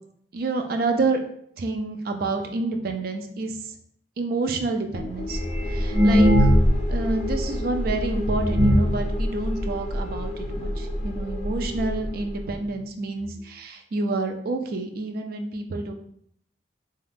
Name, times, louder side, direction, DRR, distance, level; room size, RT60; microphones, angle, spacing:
voice 1, 0.3-1.2 1.6-3.6 4.2-5.4 5.7-6.5 6.9-15.9, right 3 dB, 55° right, 4 dB, 0.3 m, -28 dB
sound 1, 4.9-12.7, left 1 dB, 35° left, 0.4 m, -29 dB
sound 2, 5.3-6.9 7.2-7.3 7.9-8.0 8.3-9.0 9.7-9.8 10.1-10.2 10.5-10.8 11.6-11.7 12.0-12.1 12.7-12.8 13.1-13.2, equal, 70° right, 1.0 m, -19 dB
2.4 x 2.3 x 3.3 m, 0.67 s
head